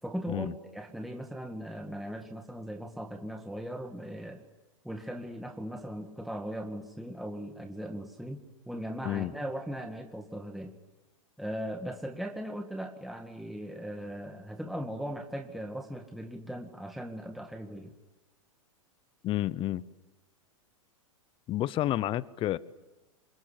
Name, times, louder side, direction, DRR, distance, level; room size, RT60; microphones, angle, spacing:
voice 1, 0.0-4.5 4.8-8.4 8.7-10.7 11.4-18.0, equal, ahead, 2.1 m, -38 dB
voice 2, 19.2-19.9 21.5-22.6, left 14 dB, 30° left, 0.8 m, -30 dB
27.0 x 22.5 x 8.4 m
hypercardioid pair, 105°, 18 cm